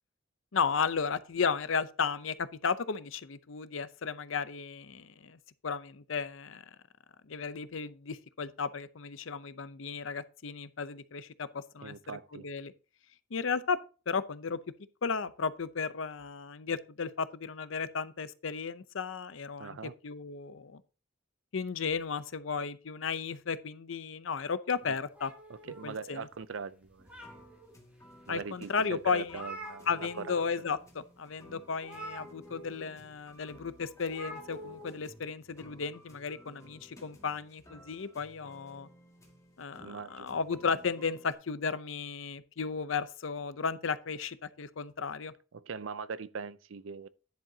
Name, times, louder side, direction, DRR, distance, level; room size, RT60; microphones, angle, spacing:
voice 1, 0.5-6.6 7.2-11.9 12.3-12.7 13.3-13.8 14.1-14.6 15.0-19.8 20.0-20.8 21.5-25.3 25.7-26.3 28.3-29.4 29.9-38.9 39.6-45.3, left 5 dB, 75° left, 0.6 m, -34 dB
voice 2, 11.8-12.5 19.6-19.9 24.9-25.0 25.5-27.1 28.3-30.4 39.8-40.4 45.5-47.1, right 5 dB, 70° right, 0.5 m, -41 dB
sound 1, 25.1-26.4 26.8-27.7 28.3-28.4 28.8-28.9 29.1-30.4 30.7-30.9 31.8-32.9 34.1-34.9, equal, 5° right, 2.8 m, -46 dB
sound 2, 27.0-41.3, equal, 15° left, 2.1 m, -56 dB
10.5 x 7.5 x 2.8 m
head